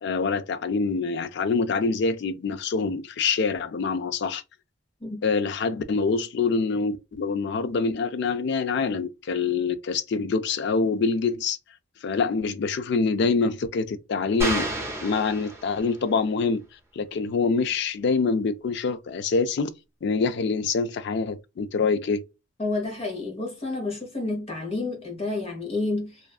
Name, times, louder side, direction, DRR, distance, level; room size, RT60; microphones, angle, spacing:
voice 1, 0.0-4.4 5.2-11.6 12.0-14.7 15.0-16.6 17.0-19.7 20.0-22.2, left 4 dB, 55° left, 0.3 m, -25 dB
sound 1, 14.4-16.1, right 1 dB, 15° right, 0.7 m, -30 dB
voice 2, 22.6-26.2, left 2 dB, 30° left, 0.9 m, -30 dB
2.5 x 2.3 x 2.3 m
head